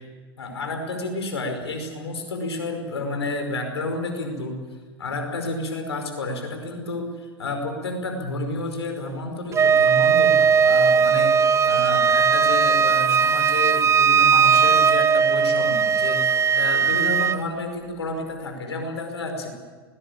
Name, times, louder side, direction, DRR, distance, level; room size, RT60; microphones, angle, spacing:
voice 1, 0.4-4.5 5.0-7.1 7.4-19.5, left 2 dB, 85° left, 5 dB, 5.3 m, -30 dB
Wind instrument woodwind instrument, 9.5-17.4, right 6 dB, 20° right, 1.1 m, -18 dB
20.0 x 20.0 x 8.7 m, 1.5 s
hypercardioid pair, 95°, 13 cm